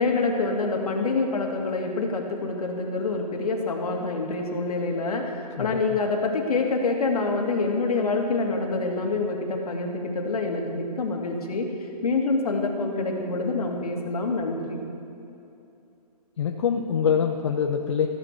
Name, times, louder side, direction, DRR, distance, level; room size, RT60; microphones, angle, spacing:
voice 1, 0.0-11.7 12.0-14.8, left 3 dB, 65° left, 2 dB, 2.3 m, -26 dB
voice 2, 16.4-18.1, left 7 dB, 45° left, 3 dB, 0.7 m, -24 dB
14.5 x 9.8 x 6.6 m, 2.7 s
hypercardioid pair, 160°, 21 cm